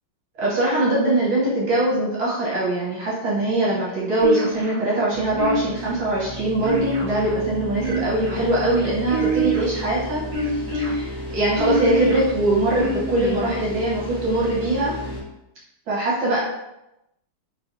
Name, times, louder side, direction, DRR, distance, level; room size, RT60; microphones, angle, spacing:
voice 1, 0.4-10.2 10.5-14.9 15.9-16.4, right 1 dB, 70° right, -6 dB, 1.6 m, -22 dB
sound 1, 4.2-4.8 5.4-5.9 6.6-7.3 7.8-8.4 9.1-9.8 10.3-10.9 11.5-12.2 12.8-13.4, right 2 dB, 50° right, 1.6 m, -25 dB
sound 2, 5.1-15.2, left 1 dB, 15° right, 0.7 m, -33 dB
3.4 x 3.2 x 2.5 m, 0.89 s
omnidirectional pair, 2.4 m